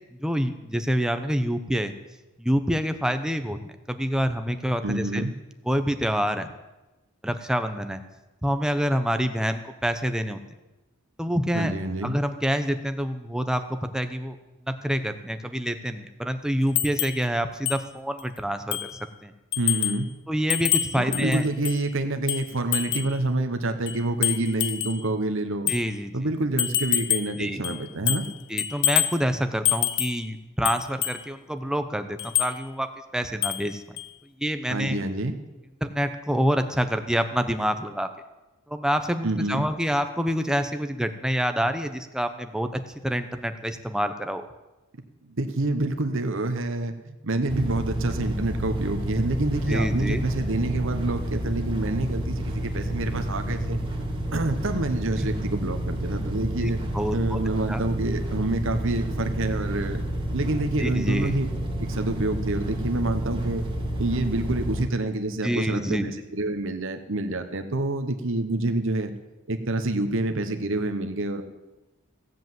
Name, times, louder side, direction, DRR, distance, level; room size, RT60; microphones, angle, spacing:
voice 1, 0.1-1.9 2.4-3.6 3.9-5.2 5.6-6.5 7.2-8.0 8.4-10.4 11.2-11.7 12.0-14.4 14.7-19.3 20.3-21.5 25.7-26.3 27.4-27.7 28.5-34.0 34.4-35.0 35.8-38.1 38.7-44.5 49.7-50.2 55.2-55.3 56.6-57.4 57.7-57.8 60.8-61.3 65.4-66.1, equal, 5° right, 7 dB, 0.8 m, -27 dB
voice 2, 4.8-5.3 11.5-12.2 19.6-20.1 20.9-25.7 26.1-28.3 34.7-35.3 39.2-39.7 45.3-53.8 54.3-56.8 57.1-60.0 60.3-61.5 61.8-63.6 64.0-69.1 69.5-71.4, right 2 dB, 60° right, 7 dB, 1.0 m, -27 dB
sound 1, 16.8-17.2 17.7-17.8 18.2-18.3 18.7-19.0 19.5-20.0 20.5-21.8 22.3-23.1 23.9-25.0 25.7-25.8 26.6-27.4 27.6-28.3 28.6-29.2 29.6-30.2 30.6-31.2 32.2-32.5 33.4-33.7 34.0-34.1, left 12 dB, 55° left, 0.7 m, -26 dB
sound 2, 47.5-64.9, equal, 25° right, 2.3 m, -30 dB
16.0 x 7.7 x 7.8 m, 1.1 s
head